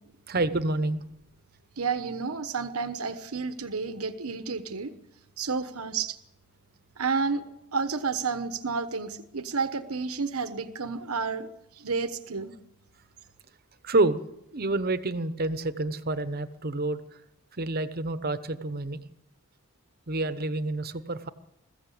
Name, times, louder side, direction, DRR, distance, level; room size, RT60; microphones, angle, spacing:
voice 1, 0.3-1.0 13.8-14.2 14.5-17.2 17.5-19.0 20.1-21.3, right 2 dB, 45° right, 12 dB, 1.0 m, -28 dB
voice 2, 1.8-4.9 5.4-6.2 7.0-7.4 7.7-11.5 11.8-12.5, right 5 dB, 85° right, 10 dB, 1.2 m, -30 dB
21.5 x 14.5 x 8.5 m, 0.86 s
head